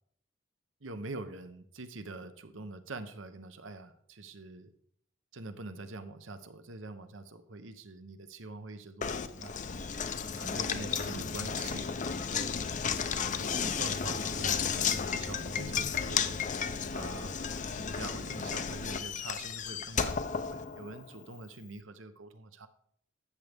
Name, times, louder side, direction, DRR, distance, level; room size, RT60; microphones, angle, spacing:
voice 1, 0.8-4.7 5.3-9.5 10.3-11.9 12.3-12.6 13.3-16.4 16.9-22.7, right 2 dB, 75° right, 10 dB, 0.9 m, -44 dB
Knock, 9.0-21.2, left 6 dB, 40° left, 0.6 m, -33 dB
13.0 x 7.9 x 3.5 m, 0.66 s
head